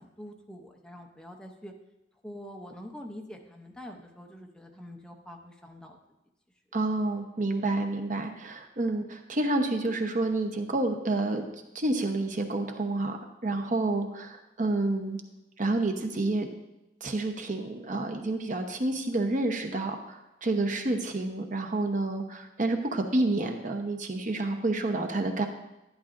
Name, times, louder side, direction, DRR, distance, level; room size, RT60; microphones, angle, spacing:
voice 1, 0.0-1.7 2.2-6.0, equal, 5° left, 2 dB, 0.7 m, -45 dB
voice 2, 6.7-11.5 11.7-13.2 13.4-15.2 15.6-16.5 17.0-25.5, right 2 dB, 45° right, 5 dB, 0.9 m, -29 dB
11.5 x 11.0 x 2.6 m, 0.95 s
head